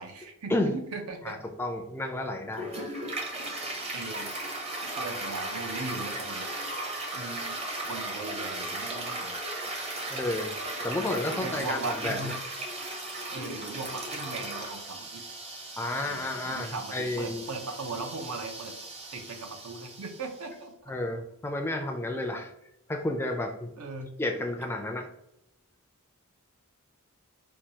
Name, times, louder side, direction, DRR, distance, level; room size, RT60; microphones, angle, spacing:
voice 1, 0.0-1.4 2.8-2.9 3.9-4.4 4.8-6.5 7.1-9.4 9.9-10.2 11.3-12.4 13.3-15.2 16.0-18.7 19.1-20.9 23.8-24.1, right 3 dB, 80° right, 5 dB, 0.6 m, -39 dB
voice 2, 1.3-2.7 10.1-10.5 10.8-12.2 15.8-17.5 20.9-22.5 22.9-23.7 24.2-25.1, left 1 dB, 10° left, 3 dB, 0.3 m, -31 dB
Toilet flush, 2.5-20.5, right 2 dB, 30° right, 0.6 m, -37 dB
4.5 x 2.3 x 2.7 m, 0.82 s
head